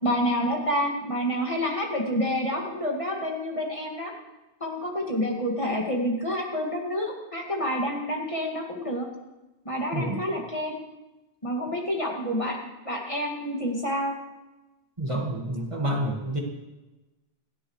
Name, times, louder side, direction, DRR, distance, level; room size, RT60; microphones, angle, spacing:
voice 1, 0.0-4.1 4.6-9.1 9.6-10.8 11.4-14.2, equal, 30° left, -1 dB, 2.2 m, -28 dB
voice 2, 9.9-10.2 15.0-16.4, right 1 dB, 30° right, -1 dB, 1.9 m, -28 dB
27.5 x 10.0 x 3.2 m, 1.1 s
omnidirectional pair, 1.0 m